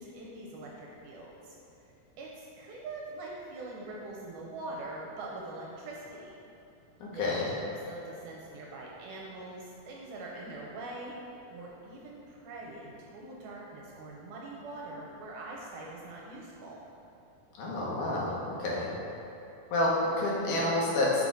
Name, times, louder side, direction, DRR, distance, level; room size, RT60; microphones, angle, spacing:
voice 1, 0.0-1.6 1.8-6.2 7.1-11.1 11.5-16.8, right 2 dB, 80° right, -3 dB, 2.1 m, -43 dB
voice 2, 7.0-7.5 17.6-18.9 19.7-21.3, left 2 dB, 80° left, -5 dB, 2.7 m, -29 dB
6.7 x 4.8 x 3.9 m, 2.9 s
omnidirectional pair, 3.7 m